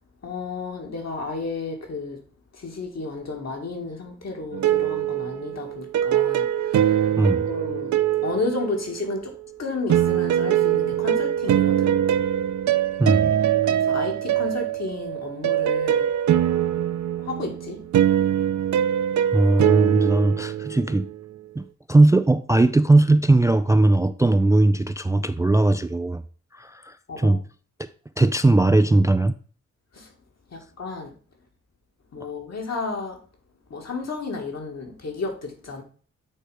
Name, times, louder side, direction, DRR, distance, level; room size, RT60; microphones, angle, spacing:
voice 1, 0.2-2.2 2.5-7.1 7.5-7.9 8.2-12.0 13.7-16.1 17.2-17.8 27.1-27.4 29.9-30.1 30.5-31.1 32.1-33.2 33.7-35.8, left 3 dB, 55° left, 2.0 m, -32 dB
sound 1, 4.5-9.3 9.9-21.2, right 10 dB, 65° right, 0.5 m, -23 dB
voice 2, 7.2-7.5 13.0-13.3 19.3-21.1 21.6-26.2 26.5-27.4 28.2-29.3, right 2 dB, 10° right, 0.3 m, -19 dB
8.6 x 3.3 x 4.9 m
cardioid pair, 70°, 31 cm